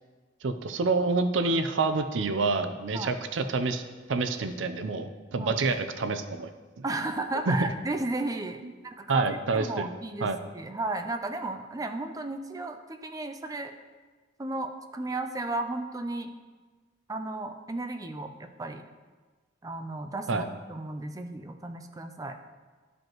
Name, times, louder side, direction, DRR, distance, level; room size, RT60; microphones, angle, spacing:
voice 1, 0.4-3.8 4.1-6.5 6.8-6.9 7.5-7.6 9.1-9.9 10.2-10.4 20.3-20.4, right 3 dB, 90° right, 9 dB, 0.6 m, -27 dB
voice 2, 6.8-13.7 14.4-16.3 17.1-18.8 19.6-22.3, right 2 dB, 20° right, 7 dB, 0.4 m, -34 dB
11.5 x 5.1 x 3.0 m, 1.4 s
head